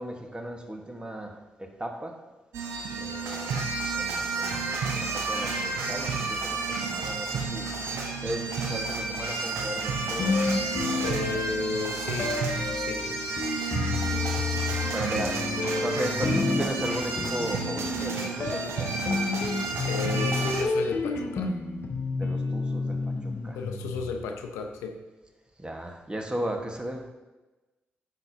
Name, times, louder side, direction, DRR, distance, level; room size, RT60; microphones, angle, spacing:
voice 1, 0.0-2.2 3.0-3.6 3.9-10.6 14.9-19.2 22.2-23.6 25.6-27.1, right 1 dB, 20° right, 3 dB, 1.4 m, -36 dB
sound 1, 2.5-20.6, right 4 dB, 75° right, 0.9 m, -31 dB
sound 2, 10.2-11.7 12.2-24.4, left 3 dB, 55° left, 0.9 m, -30 dB
voice 2, 11.0-12.3 12.7-13.0 19.8-21.5 23.5-25.0, left 4 dB, 85° left, 4 dB, 0.7 m, -33 dB
9.8 x 6.4 x 2.8 m, 1.1 s
hypercardioid pair, 40°, 5 cm